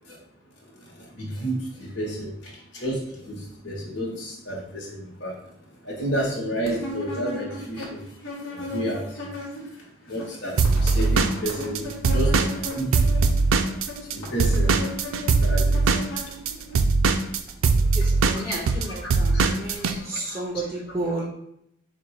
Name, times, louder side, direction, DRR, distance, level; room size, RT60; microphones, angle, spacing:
voice 1, 1.2-2.3 2.8-3.4 3.6-5.3 5.9-8.0 8.7-9.0 10.1-11.8 12.1-12.3 12.7-12.9 14.1-14.7 15.4-15.8 18.5-18.7 19.3-19.5, right 1 dB, 55° left, -4 dB, 1.1 m, -30 dB
sound 1, 6.7-9.8 10.1-16.8, left 1 dB, 80° left, 1.2 m, -36 dB
Drum kit / Drum, 10.6-14.1 14.4-19.9, right 4 dB, 90° right, 0.4 m, -20 dB
voice 2, 17.9-21.2, right 2 dB, 15° right, -3 dB, 0.6 m, -32 dB
4.3 x 2.2 x 4.6 m, 0.76 s
head